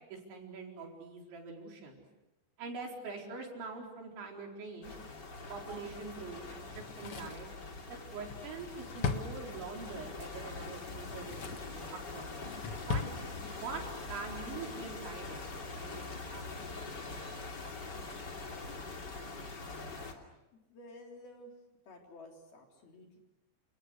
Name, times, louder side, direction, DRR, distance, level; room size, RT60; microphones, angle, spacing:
voice 1, 0.1-2.0 2.6-5.0 5.5-7.5 7.9-12.3 12.9-13.0 13.6-16.5, right 4 dB, 75° right, 0 dB, 6.8 m, -44 dB
sound 1, 4.8-20.1, left 3 dB, 30° left, 2.5 m, -44 dB
Drawer open or close, 6.7-10.0 10.8-11.8 12.2-13.2 13.5-13.6, left 5 dB, 80° left, 1.2 m, -39 dB
voice 2, 20.5-21.5 21.9-23.2, left 1 dB, 55° left, 1 dB, 5.3 m, -52 dB
30.0 x 28.5 x 6.6 m, 1.0 s
omnidirectional pair, 5.4 m